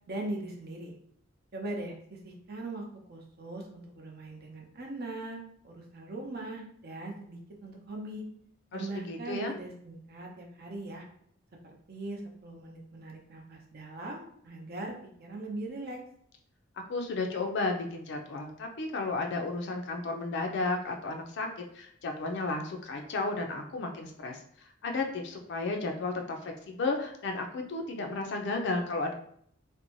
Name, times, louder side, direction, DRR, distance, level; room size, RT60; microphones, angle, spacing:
voice 1, 0.1-0.9 1.5-8.2 8.7-11.0 11.9-14.9 15.2-16.0, right 2 dB, 50° right, 0 dB, 0.6 m, -40 dB
voice 2, 8.7-9.5 16.9-21.5 21.7-29.1, left 3 dB, 60° left, 3 dB, 0.4 m, -33 dB
2.5 x 2.1 x 3.0 m, 0.66 s
head